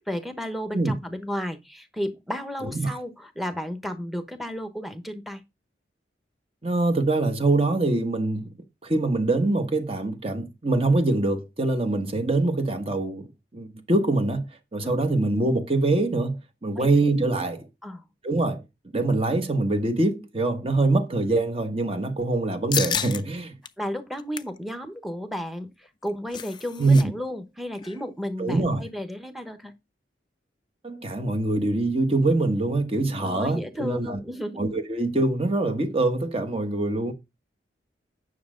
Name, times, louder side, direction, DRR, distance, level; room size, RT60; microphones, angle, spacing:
voice 1, 0.0-5.4 14.8-15.0 16.7-16.9 17.8-18.0 23.8-29.7 33.2-34.6, equal, ahead, 1.0 m, -33 dB
voice 2, 6.6-8.5 8.8-14.5 14.7-17.7 18.2-18.6 18.9-23.5 26.8-27.1 28.4-28.8 30.8-34.2 34.6-37.1, right 2 dB, 30° right, 1.1 m, -24 dB
sound 1, 22.7-23.2 23.6-23.7 24.1-24.6 25.9-27.0 27.3-27.4 27.8-28.0, left 8 dB, 25° left, 0.4 m, -30 dB
9.6 x 6.2 x 3.8 m
head